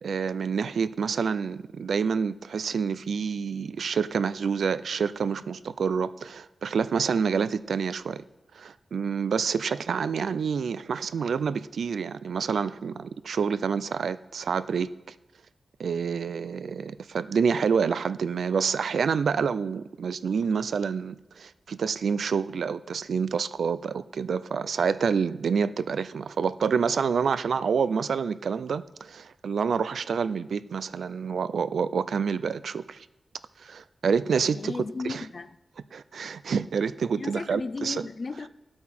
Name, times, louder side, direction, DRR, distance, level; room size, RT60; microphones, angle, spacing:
voice 1, 0.0-8.2 8.5-15.1 15.8-33.1 33.6-34.7 35.0-35.2 35.9-38.1, right 6 dB, 90° right, 0.4 m, -28 dB
voice 2, 34.5-35.6 37.2-38.5, left 4 dB, 45° left, 0.5 m, -35 dB
16.5 x 8.5 x 4.3 m
wide cardioid pair, 130°, 0 cm